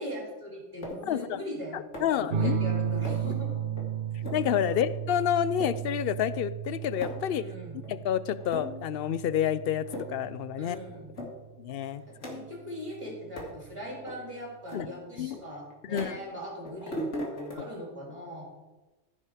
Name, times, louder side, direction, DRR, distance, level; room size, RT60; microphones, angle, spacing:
voice 1, 0.0-3.6 4.7-4.8 7.3-7.8 10.6-11.2 12.1-18.4, equal, 25° right, -2 dB, 3.4 m, -40 dB
sound 1, 0.8-1.2 1.9-2.3 3.0-3.4 3.8-3.9 4.2-4.5 4.9-5.0 5.4-5.8 6.3-6.4 6.6-7.3 7.8-7.9 8.4-8.9 9.3-9.5 9.8-10.2 10.6-10.7 11.2-11.3 11.7-12.7 13.4-13.6 14.1-14.2 14.7-16.4 16.7-17.5, equal, 90° left, 2.7 m, -39 dB
voice 2, 1.1-1.4 1.7-2.6 4.3-7.4 7.9-10.8 11.6-12.0 14.7-14.9 15.2-15.3 15.9-16.2, left 10 dB, 60° left, 15 dB, 0.7 m, -29 dB
sound 2, 2.3-11.4 12.8-13.4, right 8 dB, 80° right, 1.1 m, -34 dB
15.0 x 5.7 x 4.9 m, 1.2 s
omnidirectional pair, 1.2 m